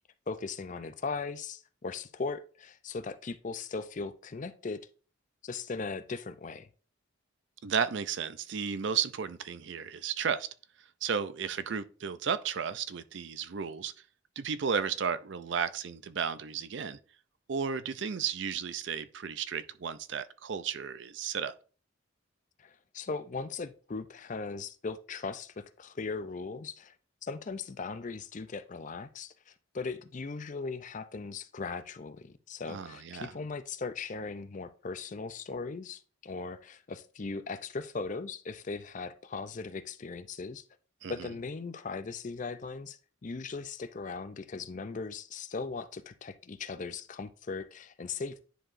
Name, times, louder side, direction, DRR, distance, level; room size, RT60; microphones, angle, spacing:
voice 1, 0.3-4.8 5.4-6.7 22.6-26.9 27.2-40.6 41.1-48.4, left 4 dB, 40° left, 0.5 m, -38 dB
voice 2, 7.6-10.5 11.0-13.9 14.4-17.0 17.5-21.5 32.7-33.3 41.0-41.3, right 6 dB, 65° right, 0.5 m, -33 dB
10.0 x 4.8 x 2.6 m
head